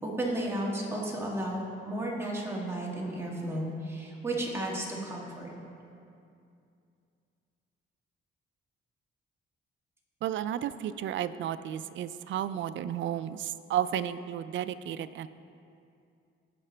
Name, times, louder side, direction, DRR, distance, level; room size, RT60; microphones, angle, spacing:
voice 1, 0.0-5.5, right 1 dB, 10° right, -3 dB, 1.9 m, -33 dB
voice 2, 10.2-15.3, right 10 dB, 65° right, 13 dB, 0.4 m, -33 dB
17.5 x 5.8 x 3.3 m, 2.5 s
cardioid pair, 110°, 21 cm